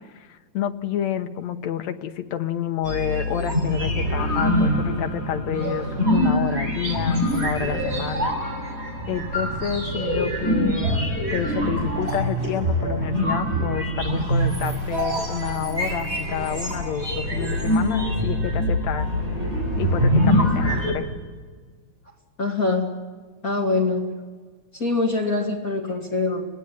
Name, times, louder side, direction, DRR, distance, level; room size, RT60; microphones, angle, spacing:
voice 1, 0.0-8.4 9.1-19.2 19.8-21.1, left 9 dB, 70° left, 7 dB, 2.3 m, -29 dB
sound 1, 2.8-20.9, equal, 20° right, 7.4 m, -24 dB
sound 2, 7.2-21.3, right 3 dB, 70° right, 2.6 m, -36 dB
voice 2, 22.4-23.0 23.4-24.1 24.7-26.4, left 3 dB, 30° left, 1 dB, 2.2 m, -24 dB
25.5 x 18.5 x 8.4 m, 1.5 s
omnidirectional pair, 3.4 m